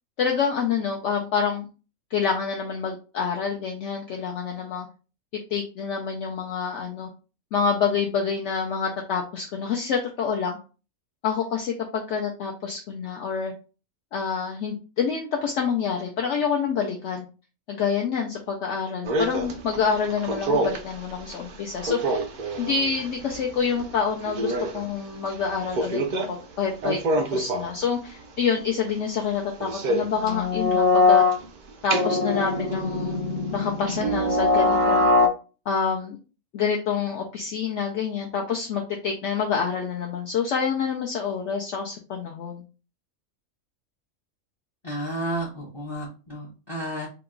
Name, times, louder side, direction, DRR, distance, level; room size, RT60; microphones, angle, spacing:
voice 1, 0.2-1.7 2.1-4.9 5.5-7.1 7.5-10.6 11.2-13.5 14.1-17.3 17.7-22.2 22.6-27.0 27.3-31.2 31.8-33.2 33.5-35.0 35.7-36.2 36.5-42.6, left 6 dB, 70° left, 0 dB, 0.8 m, -27 dB
sound 1, 19.1-20.9 21.3-21.4 21.8-23.9 24.3-24.9 25.7-26.3 26.8-27.8 29.6-31.4 31.8-35.3, left 2 dB, 60° right, 0.4 m, -23 dB
voice 2, 44.8-47.1, right 1 dB, 30° left, -5 dB, 0.6 m, -32 dB
2.9 x 2.3 x 3.6 m, 0.34 s
omnidirectional pair, 1.4 m